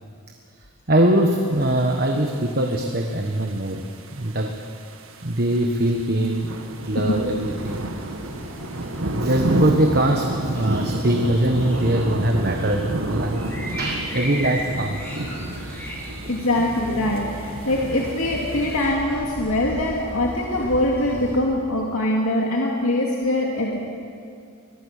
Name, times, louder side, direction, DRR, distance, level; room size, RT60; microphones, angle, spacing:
voice 1, 0.9-3.8 4.1-4.6 5.2-6.5 6.8-7.9 9.1-13.5 13.8-15.2, right 1 dB, 45° right, 3 dB, 1.4 m, -22 dB
sound 1, 1.6-18.8, right 1 dB, 65° right, 1.8 m, -31 dB
sound 2, 6.9-21.4, equal, 10° left, 5.9 m, -37 dB
voice 2, 16.3-23.8, left 1 dB, 75° left, -2 dB, 2.4 m, -23 dB
23.0 x 21.5 x 6.7 m, 2.3 s
head